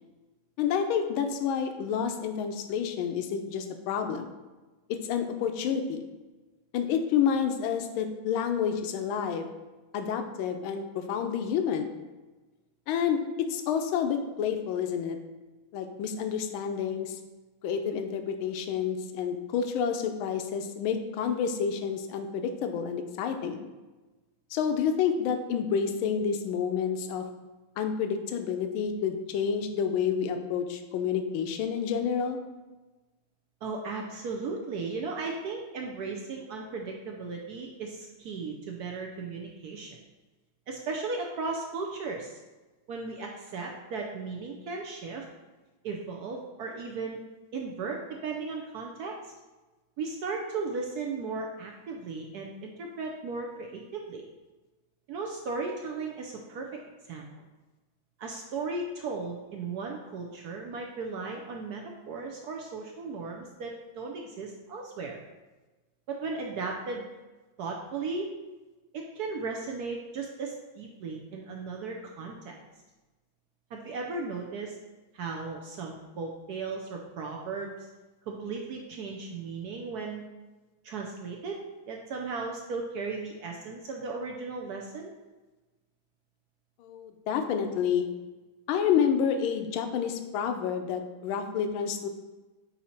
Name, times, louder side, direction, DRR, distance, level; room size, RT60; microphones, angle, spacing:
voice 1, 0.6-4.3 4.9-6.1 6.7-9.5 9.9-11.9 12.9-15.2 15.7-17.2 17.6-23.6 24.5-27.2 27.8-32.4 86.8-88.1 88.7-92.1, left 7 dB, 80° left, 6 dB, 1.4 m, -29 dB
voice 2, 33.6-40.0 40.7-42.4 42.9-45.3 45.8-47.2 47.5-49.3 50.0-54.3 55.1-56.7 57.0-57.2 58.2-65.2 66.1-67.1 67.6-68.3 68.9-72.6 73.7-74.8 75.1-77.9 78.3-80.2 80.8-85.1, right 4 dB, 75° right, 1 dB, 0.9 m, -36 dB
8.3 x 2.8 x 4.3 m, 1.2 s
omnidirectional pair, 2.2 m